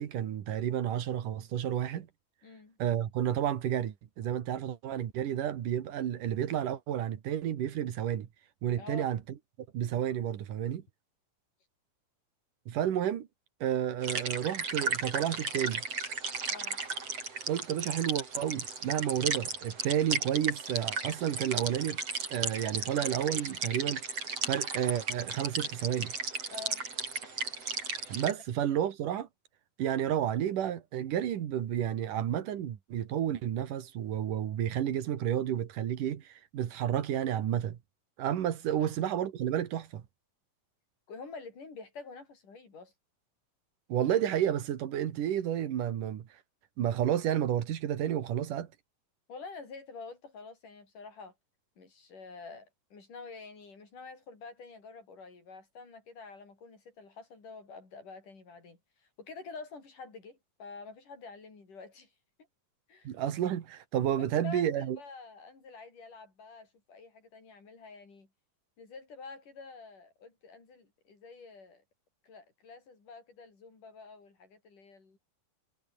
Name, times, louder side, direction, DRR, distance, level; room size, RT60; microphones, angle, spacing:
voice 1, 0.0-2.1 2.8-8.3 8.6-9.2 9.7-10.8 12.7-13.3 13.6-15.8 17.5-22.0 22.3-24.0 24.4-26.1 28.1-29.3 29.8-37.8 38.2-40.0 43.9-46.3 46.8-48.7 63.0-65.0, right 10 dB, 80° right, 3.3 m, -31 dB
voice 2, 2.4-2.8 8.8-9.1 16.5-16.8 26.5-26.8 38.8-39.0 41.1-42.9 49.3-51.3 51.8-62.1 62.9-63.1 64.2-68.3 68.8-71.8 72.2-75.2, left 4 dB, 75° left, 8.0 m, -48 dB
sound 1, 14.0-28.3, right 4 dB, 50° right, 5.6 m, -35 dB
omnidirectional pair, 3.7 m